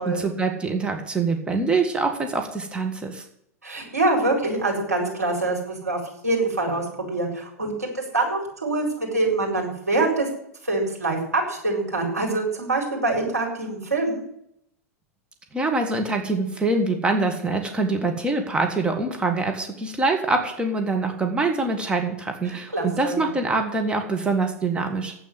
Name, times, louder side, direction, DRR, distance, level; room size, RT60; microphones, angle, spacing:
voice 1, 0.0-3.2 15.5-25.1, right 3 dB, 10° right, 3 dB, 1.9 m, -24 dB
voice 2, 3.6-10.3 10.6-14.2 22.5-23.3, right 2 dB, 85° right, -1 dB, 4.4 m, -25 dB
9.5 x 8.4 x 9.4 m, 0.73 s
figure-of-eight pair, 90°, 8 cm